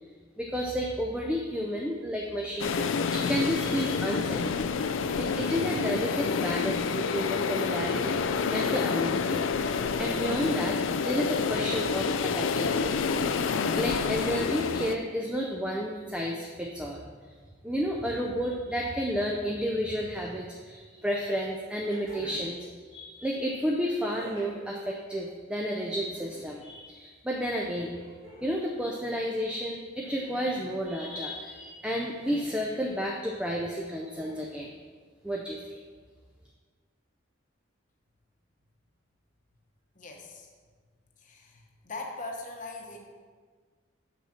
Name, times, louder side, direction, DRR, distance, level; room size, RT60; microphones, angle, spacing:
voice 1, 0.4-4.7 5.2-9.4 10.0-13.4 13.7-17.1 17.6-28.0 28.4-34.8 35.2-35.8, equal, 5° right, -2 dB, 0.4 m, -32 dB
sound 1, 2.6-15.0, left 5 dB, 70° left, 0.4 m, -28 dB
sound 2, 20.8-20.9 21.8-22.6 24.0-24.6 25.9-26.6 27.9-28.7 30.0-30.7 32.2-32.7 34.1-34.7 36.0-36.1, right 1 dB, 70° right, 2.4 m, -48 dB
voice 2, 39.9-40.5 41.2-43.0, left 2 dB, 40° left, 1 dB, 0.9 m, -40 dB
7.2 x 6.0 x 4.2 m, 1.5 s
head